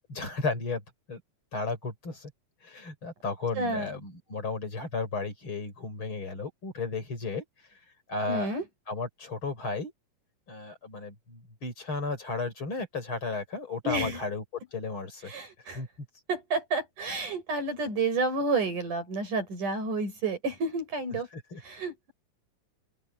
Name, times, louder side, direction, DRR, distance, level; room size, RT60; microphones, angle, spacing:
voice 1, 0.1-0.8 1.1-1.2 1.5-2.3 2.6-7.4 8.1-8.5 8.9-9.9 10.5-14.4 14.7-15.3 15.7-15.9 21.3-21.6, left 3 dB, 40° left, 6.2 m, -34 dB
voice 2, 3.6-3.9 8.3-8.7 13.8-14.2 15.3-15.8 16.3-21.3 21.6-22.1, right 3 dB, 85° right, 9.0 m, -30 dB
open air
omnidirectional pair, 3.5 m